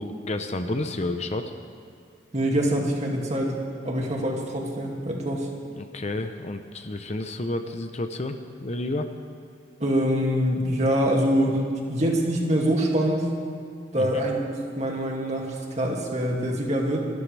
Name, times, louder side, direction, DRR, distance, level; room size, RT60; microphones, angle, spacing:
voice 1, 0.0-1.5 5.7-9.1 13.9-14.2, left 2 dB, 35° left, 7 dB, 0.8 m, -30 dB
voice 2, 2.3-3.5 3.8-5.5 9.8-13.3 13.9-17.0, equal, 40° right, -1 dB, 2.4 m, -25 dB
27.5 x 13.5 x 3.4 m, 2.5 s
head